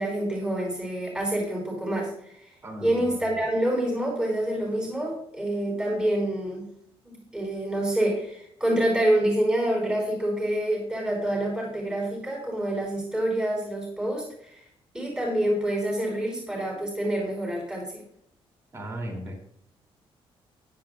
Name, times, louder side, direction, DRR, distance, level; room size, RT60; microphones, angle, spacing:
voice 1, 0.0-2.3 2.8-6.7 7.0-14.6 14.9-18.0, right 1 dB, 10° right, -3 dB, 3.9 m, -27 dB
voice 2, 2.6-3.3 18.7-19.3, right 1 dB, 30° right, 1 dB, 2.6 m, -36 dB
14.5 x 10.5 x 2.3 m, 0.70 s
cardioid pair, 155°, 10 cm